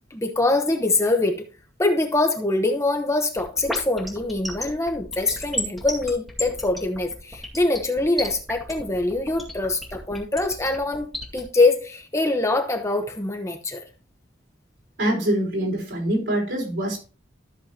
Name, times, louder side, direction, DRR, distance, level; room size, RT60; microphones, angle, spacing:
voice 1, 0.1-1.4 1.8-13.8, left 2 dB, 15° left, 5 dB, 1.0 m, -24 dB
sound 1, 3.4-11.4, left 1 dB, ahead, 2.1 m, -31 dB
voice 2, 15.0-17.0, right 1 dB, 70° right, -3 dB, 5.1 m, -24 dB
13.5 x 6.7 x 2.9 m, 0.35 s
head